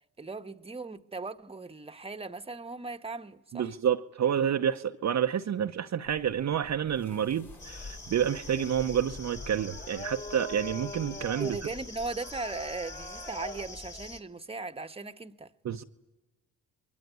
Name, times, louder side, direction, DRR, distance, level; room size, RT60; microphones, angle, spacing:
voice 1, 0.2-3.7 11.4-15.5, right 3 dB, 15° right, 1.2 m, -38 dB
voice 2, 3.5-11.6 15.6-15.8, right 9 dB, 50° right, 0.9 m, -29 dB
sound 1, 6.0-13.1, left 4 dB, 65° left, 5.0 m, -51 dB
sound 2, 7.6-14.2, left 2 dB, 30° left, 2.7 m, -42 dB
23.5 x 22.5 x 9.5 m
hypercardioid pair, 45°, 37 cm